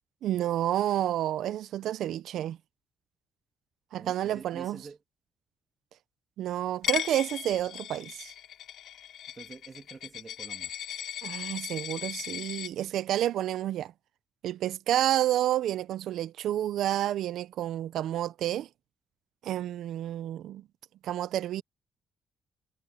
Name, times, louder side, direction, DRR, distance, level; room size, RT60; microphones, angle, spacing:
voice 1, 0.2-2.6 3.9-4.8 6.4-8.3 11.2-13.9 14.4-18.7 19.4-20.6 21.0-21.6, right 12 dB, 80° right, 0.6 m, -30 dB
voice 2, 3.9-5.0 9.4-10.7, right 4 dB, 35° right, 2.3 m, -47 dB
Coin (dropping), 6.8-12.7, left 10 dB, 75° left, 3.2 m, -37 dB
cardioid pair, 90°, 0 cm